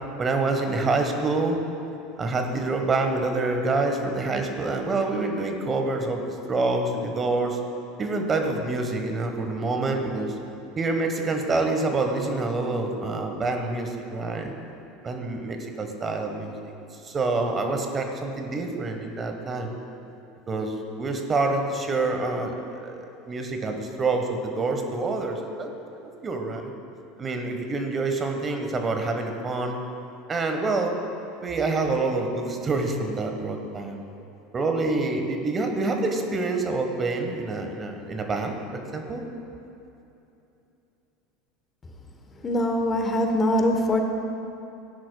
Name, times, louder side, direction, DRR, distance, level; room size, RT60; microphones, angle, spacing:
voice 1, 0.2-1.6 2.2-7.6 8.0-10.3 10.8-14.5 15.0-16.5 17.0-19.7 20.5-25.7 26.0-26.7 27.2-29.8 30.3-31.0 31.4-34.0 34.5-39.2, right 3 dB, 30° right, 4 dB, 1.2 m, -27 dB
voice 2, 42.4-44.0, left 1 dB, 25° left, 4 dB, 1.1 m, -23 dB
16.0 x 10.0 x 2.3 m, 2.8 s
hypercardioid pair, 80°, 0 cm